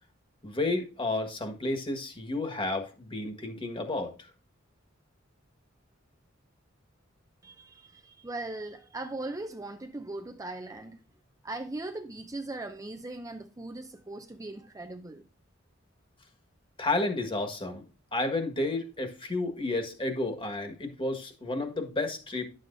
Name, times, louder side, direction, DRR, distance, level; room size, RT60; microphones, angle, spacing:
voice 1, 0.4-4.3 16.8-17.8 18.1-22.5, left 2 dB, 25° left, 1.6 m, -31 dB
voice 2, 7.4-11.0 11.4-15.3, right 2 dB, 15° right, 0.6 m, -39 dB
11.0 x 7.7 x 2.7 m
head